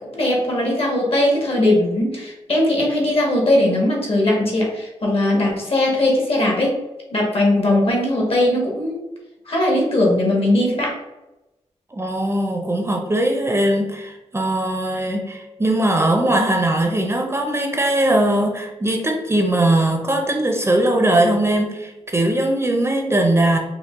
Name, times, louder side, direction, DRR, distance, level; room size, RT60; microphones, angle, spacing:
voice 1, 0.1-6.7 7.1-9.0 9.5-10.9, left 1 dB, 55° left, -2 dB, 1.4 m, -19 dB
voice 2, 11.9-23.6, right 1 dB, 20° right, 2 dB, 0.6 m, -20 dB
5.2 x 2.2 x 3.5 m, 0.99 s
wide cardioid pair, 105°, 12 cm